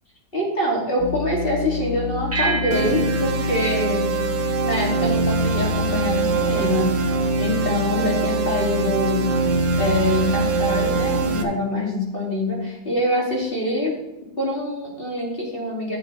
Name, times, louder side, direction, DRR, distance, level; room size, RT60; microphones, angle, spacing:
voice 1, 0.3-4.1 4.6-6.9 7.4-9.2 9.8-13.9 14.4-16.0, left 1 dB, 30° left, -3 dB, 2.9 m, -24 dB
sound 1, 1.0-11.3, left 4 dB, 45° left, 1.2 m, -29 dB
sound 2, 2.3-5.1, right 3 dB, 15° right, 0.5 m, -31 dB
sound 3, 2.7-11.4, right 4 dB, 85° right, 1.8 m, -23 dB
13.5 x 7.5 x 3.4 m, 0.93 s
omnidirectional pair, 2.0 m